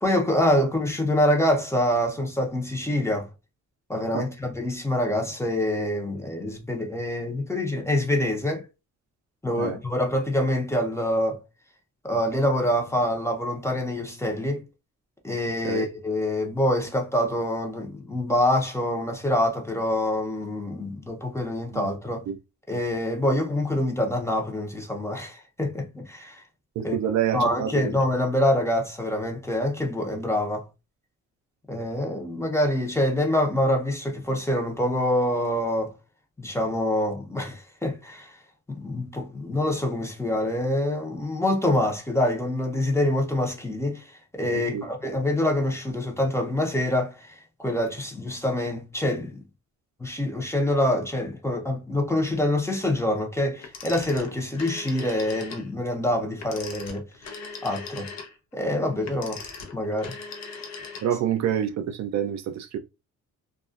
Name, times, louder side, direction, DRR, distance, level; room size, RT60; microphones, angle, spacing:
voice 1, 0.0-3.3 3.9-8.6 9.4-11.4 12.0-14.7 15.2-22.3 22.7-26.4 26.8-30.7 31.7-35.9 36.4-38.4 38.7-49.4 50.0-57.1 57.6-58.1 58.5-59.4 59.7-60.2, left 1 dB, 10° left, 0.7 m, -26 dB
voice 2, 26.8-27.9 44.5-44.8 61.0-62.8, right 9 dB, 65° right, 0.5 m, -27 dB
Telephone, 53.6-55.7 56.3-61.4, left 5 dB, 60° left, 0.7 m, -40 dB
2.3 x 2.3 x 2.4 m
cardioid pair, 90°, 30 cm